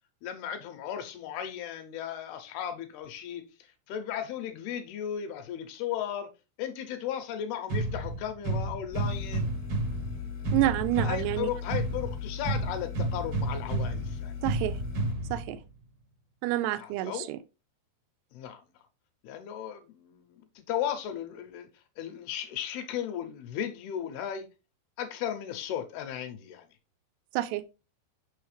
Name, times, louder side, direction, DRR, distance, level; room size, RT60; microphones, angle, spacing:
voice 1, 0.2-6.3 6.6-9.5 11.0-14.3 16.7-17.3 18.3-18.6 19.2-21.7 22.0-24.5 25.0-26.7, left 9 dB, 80° left, 2.5 m, -36 dB
sound 1, 7.7-15.7, right 2 dB, 60° right, 1.3 m, -32 dB
sound 2, 8.9-15.1, left 6 dB, 60° left, 1.5 m, -39 dB
voice 2, 10.5-11.5 14.4-14.7 15.3-15.6 16.4-17.4 27.3-27.6, right 14 dB, 90° right, 2.8 m, -28 dB
6.3 x 5.7 x 3.2 m
omnidirectional pair, 4.8 m